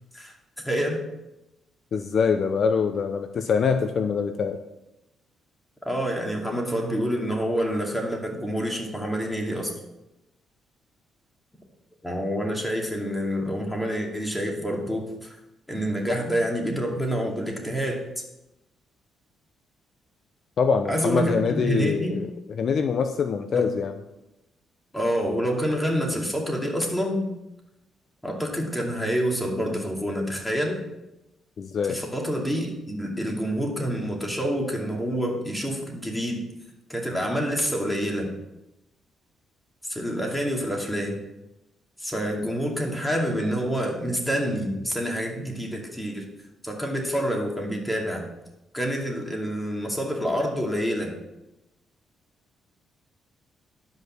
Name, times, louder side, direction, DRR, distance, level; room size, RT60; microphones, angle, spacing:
voice 1, 0.1-1.0 5.8-9.8 12.0-15.4 15.7-18.0 20.9-22.1 23.5-23.7 24.9-27.3 28.2-30.8 31.9-36.4 36.9-38.3 39.8-41.2 42.0-46.2 46.6-48.2 48.7-51.1, equal, 5° left, 0 dB, 2.5 m, -27 dB
voice 2, 1.9-4.6 20.6-22.3 22.6-23.9 31.6-32.0, left 6 dB, 55° left, 8 dB, 0.6 m, -24 dB
11.5 x 5.4 x 6.2 m, 0.94 s
cardioid pair, 90°, 0 cm